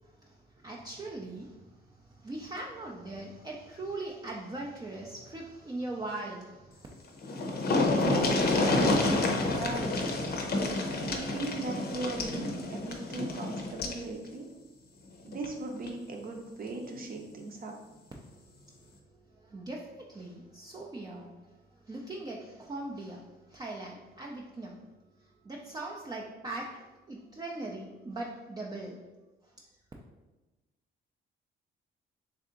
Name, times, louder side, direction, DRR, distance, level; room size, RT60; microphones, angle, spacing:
voice 1, 0.0-6.9 18.2-24.8 25.2-29.0, right 2 dB, 20° right, -3 dB, 0.4 m, -41 dB
sound 1, 6.9-7.0 7.2-14.0 15.3-15.5 15.9-16.0, left 2 dB, 50° left, 0.6 m, -29 dB
voice 2, 8.7-10.1 11.1-14.5 15.2-17.7, right 2 dB, 45° right, 2 dB, 0.7 m, -38 dB
3.4 x 2.7 x 3.7 m, 1.1 s
cardioid pair, 90°, 20 cm